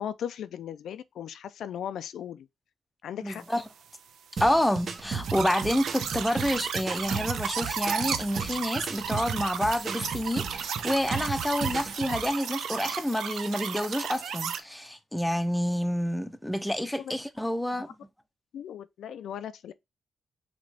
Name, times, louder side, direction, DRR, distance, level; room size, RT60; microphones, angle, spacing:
voice 1, 0.0-2.5 3.0-3.4 17.0-17.1 17.7-17.8 18.5-19.7, left 9 dB, 85° left, 0.4 m, -37 dB
voice 2, 3.2-3.6 4.4-17.9, equal, 5° left, 0.6 m, -28 dB
sound 1, 4.4-12.3, right 5 dB, 50° right, 0.9 m, -36 dB
sound 2, 5.2-14.6, right 7 dB, 90° right, 0.7 m, -34 dB
5.0 x 3.0 x 3.4 m
cardioid pair, 120°, 0 cm